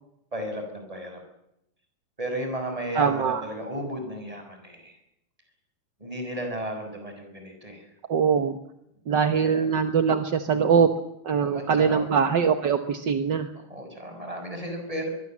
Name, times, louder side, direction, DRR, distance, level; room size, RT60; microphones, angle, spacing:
voice 1, 0.3-1.2 2.2-5.0 6.0-7.8 9.4-9.6 11.4-12.1 13.7-15.1, right 1 dB, 10° right, 5 dB, 6.2 m, -34 dB
voice 2, 2.9-3.4 8.1-8.6 9.1-10.9 11.2-13.5, right 6 dB, 50° right, 8 dB, 1.4 m, -22 dB
23.0 x 23.0 x 7.5 m, 0.80 s
omnidirectional pair, 3.5 m